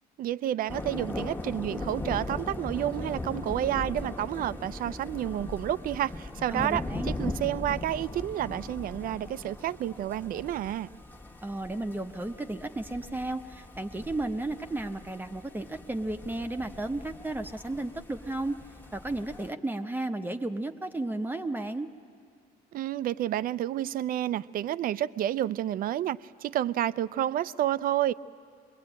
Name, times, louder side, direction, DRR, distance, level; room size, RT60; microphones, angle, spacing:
voice 1, 0.2-10.9 22.7-28.1, right 12 dB, 60° right, 16 dB, 0.5 m, -30 dB
sound 1, 0.7-19.5, left 2 dB, 10° left, 1.3 m, -39 dB
voice 2, 6.5-7.1 11.4-18.6 18.9-21.9, right 2 dB, 10° right, 6 dB, 0.8 m, -33 dB
25.5 x 21.5 x 8.9 m, 2.4 s
cardioid pair, 110°, 17 cm